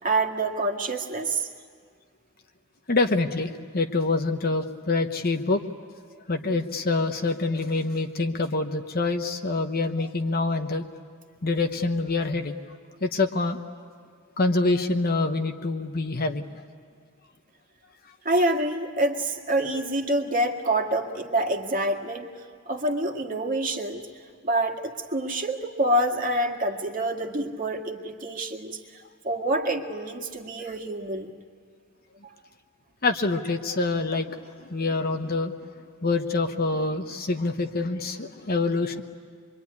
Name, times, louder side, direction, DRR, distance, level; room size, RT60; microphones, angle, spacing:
voice 1, 0.0-1.5 18.2-24.1 24.4-31.3 32.2-32.3, right 1 dB, 40° right, 2 dB, 2.0 m, -27 dB
voice 2, 2.9-5.6 6.3-10.9 11.4-12.6 13.0-13.6 14.4-16.6 33.0-35.5 36.0-39.0, left 3 dB, 45° left, 6 dB, 1.0 m, -26 dB
25.5 x 23.5 x 9.6 m, 2.1 s
head